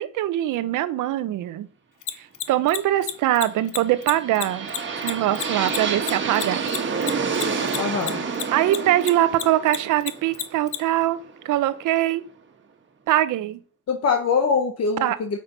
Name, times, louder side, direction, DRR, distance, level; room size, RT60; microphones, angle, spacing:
voice 1, 0.0-1.7 2.2-4.7 5.0-6.6 8.5-11.2 11.4-12.2 13.1-13.6 15.0-15.2, right 13 dB, 85° right, 13 dB, 0.8 m, -22 dB
Mechanisms, 2.0-8.8 9.0-10.8, left 13 dB, 85° left, 1.0 m, -29 dB
sound 1, 3.8-11.7, right 5 dB, 40° right, 1.5 m, -29 dB
voice 2, 7.8-8.2 13.9-15.4, left 5 dB, 55° left, 5 dB, 1.1 m, -23 dB
7.6 x 6.8 x 5.5 m, 0.41 s
cardioid pair, 90°, 30 cm